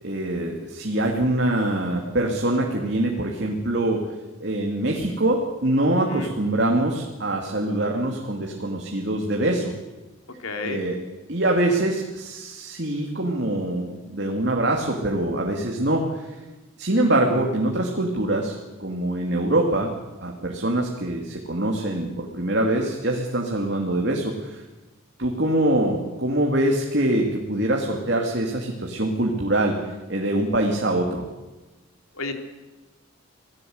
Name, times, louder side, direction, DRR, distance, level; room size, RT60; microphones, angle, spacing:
voice 1, 0.0-4.0 4.4-9.7 10.6-11.0 11.3-16.3 16.8-19.9 20.2-24.6 25.2-29.8 30.1-31.2, right 1 dB, 55° right, 0 dB, 2.9 m, -24 dB
voice 2, 10.4-10.8 32.2-32.3, left 3 dB, 90° left, 5 dB, 3.6 m, -31 dB
28.0 x 17.5 x 8.1 m, 1.1 s
head